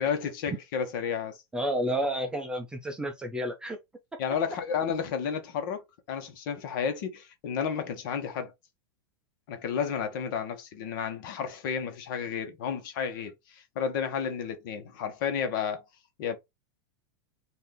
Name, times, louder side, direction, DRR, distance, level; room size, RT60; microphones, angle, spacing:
voice 1, 0.0-1.4 4.2-8.5 9.5-15.8 16.2-16.4, left 7 dB, 55° left, 1.3 m, -32 dB
voice 2, 1.5-3.8, equal, 5° right, 0.5 m, -30 dB
4.3 x 2.7 x 3.5 m
supercardioid pair, 155°, 13 cm